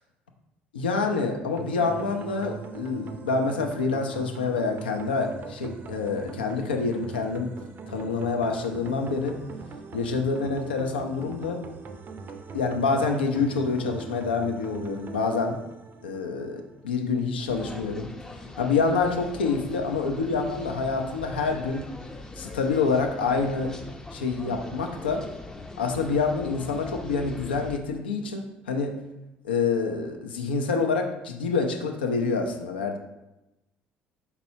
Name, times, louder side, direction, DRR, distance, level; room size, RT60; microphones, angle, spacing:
voice 1, 0.7-7.5 7.9-9.4 9.9-11.6 12.5-15.6 16.0-18.1 18.6-21.9 22.4-23.7 24.1-25.2 25.8-28.9 29.4-33.0, left 4 dB, 75° left, 4 dB, 0.5 m, -27 dB
sound 1, 1.6-16.6, right 4 dB, 40° right, 0.5 m, -42 dB
sound 2, 17.5-27.8, left 2 dB, 10° left, 0.5 m, -41 dB
4.5 x 4.0 x 2.7 m, 0.95 s
figure-of-eight pair, 55°, 5 cm